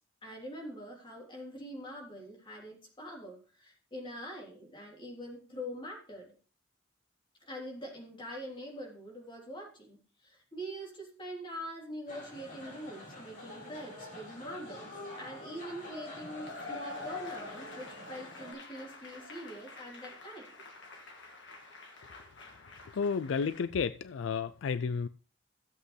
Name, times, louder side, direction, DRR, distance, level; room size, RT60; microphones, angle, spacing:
voice 1, 0.2-6.3 7.5-20.5, equal, 25° left, 3.4 m, -44 dB
sound 1, 12.1-18.5, left 1 dB, 50° left, 4.5 m, -47 dB
Cheering / Applause / Crowd, 16.0-23.6, left 3 dB, 65° left, 2.0 m, -47 dB
voice 2, 22.9-25.1, left 5 dB, 85° left, 0.4 m, -32 dB
15.5 x 8.1 x 3.3 m
head